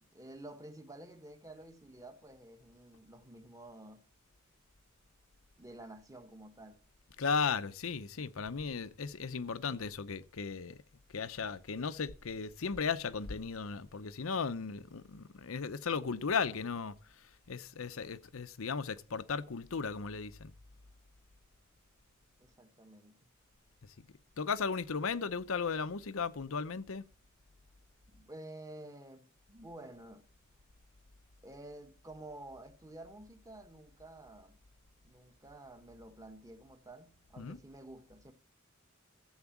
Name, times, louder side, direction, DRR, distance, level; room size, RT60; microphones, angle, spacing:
voice 1, 0.0-4.0 5.6-6.8 22.4-23.2 28.1-30.3 31.4-34.6 35.0-38.3, right 1 dB, 15° right, 1.4 m, -51 dB
voice 2, 7.2-10.8 11.1-16.9 17.5-20.5 24.4-27.0 37.4-37.6, left 5 dB, 75° left, 0.7 m, -36 dB
13.5 x 8.1 x 7.2 m
head